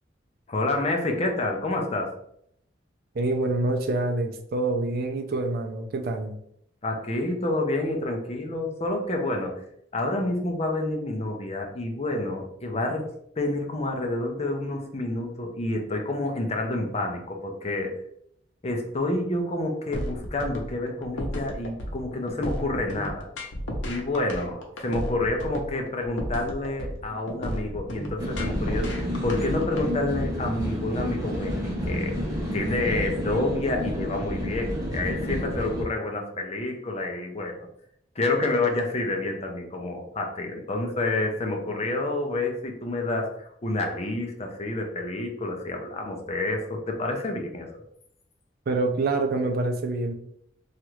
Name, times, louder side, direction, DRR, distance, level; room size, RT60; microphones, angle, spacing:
voice 1, 0.5-2.1 6.8-9.6 9.9-13.1 13.4-17.9 18.6-23.3 23.9-31.6 31.8-32.2 32.5-37.7 38.2-47.7, left 2 dB, 35° left, 2 dB, 0.5 m, -28 dB
voice 2, 3.1-6.4 48.7-50.1, right 2 dB, 55° right, 5 dB, 0.4 m, -26 dB
sound 1, 19.9-29.9, equal, 80° left, 0.7 m, -33 dB
sound 2, 28.2-35.8, equal, 20° right, 0.8 m, -30 dB
3.1 x 2.4 x 3.0 m, 0.72 s
head